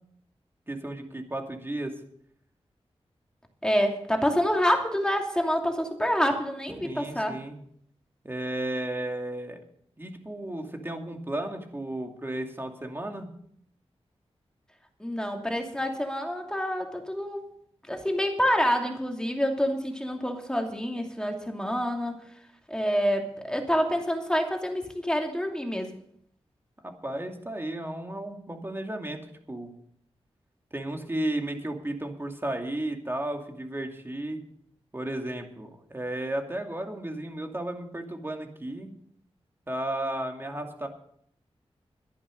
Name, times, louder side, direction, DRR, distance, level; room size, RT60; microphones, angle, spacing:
voice 1, 0.7-2.0 6.8-7.6 8.2-9.6 10.0-13.3 26.8-29.2 29.5-29.7 30.7-34.4 34.9-38.9 39.7-40.9, right 1 dB, 20° right, 3 dB, 2.5 m, -34 dB
voice 2, 3.6-7.4 15.0-17.5 17.9-22.2 22.7-25.9, equal, 5° left, 3 dB, 2.7 m, -27 dB
12.0 x 10.5 x 6.5 m, 0.65 s
wide cardioid pair, 80°, 11 cm